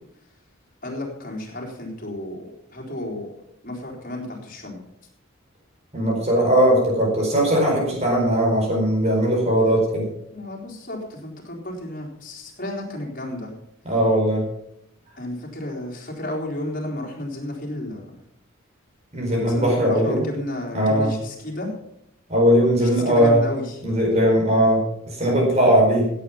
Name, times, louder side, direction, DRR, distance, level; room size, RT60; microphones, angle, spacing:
voice 1, 0.8-3.3 3.6-4.8 10.3-13.5 15.2-18.1 19.3-21.7 22.8-23.8, left 1 dB, 40° left, 0 dB, 3.9 m, -32 dB
voice 2, 5.9-10.1 13.8-14.4 19.1-20.3 20.7-21.1 22.3-23.4 23.8-26.1, equal, 30° right, -1 dB, 4.7 m, -19 dB
16.5 x 8.5 x 5.7 m, 0.75 s
head